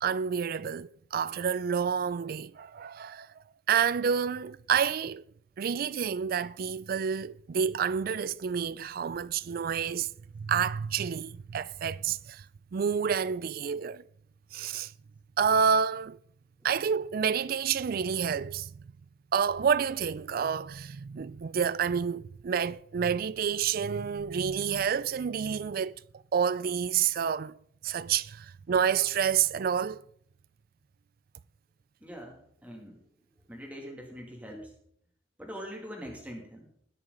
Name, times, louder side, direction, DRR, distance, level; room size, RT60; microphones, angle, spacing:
voice 1, 0.0-3.3 3.7-5.2 5.6-12.5 12.7-14.0 14.5-14.9 15.4-16.2 16.6-18.7 19.3-26.0 26.3-27.6 27.8-30.0, right 7 dB, 50° right, 0.4 m, -29 dB
voice 2, 32.0-33.0 33.5-34.7 35.4-36.7, equal, 10° right, 2.5 m, -43 dB
20.0 x 6.8 x 3.9 m
head